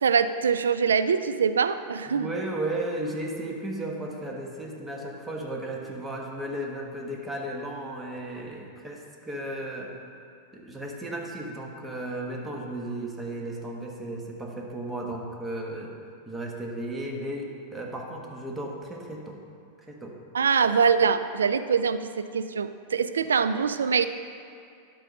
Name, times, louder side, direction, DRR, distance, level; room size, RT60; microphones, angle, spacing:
voice 1, 0.0-2.3 20.3-24.1, right 6 dB, 85° right, 11 dB, 0.3 m, -24 dB
voice 2, 2.1-9.9 10.5-15.9 16.3-19.4 19.9-20.2, right 1 dB, 15° right, -1 dB, 1.3 m, -34 dB
11.5 x 3.9 x 5.3 m, 2.4 s
hypercardioid pair, 100°, 0 cm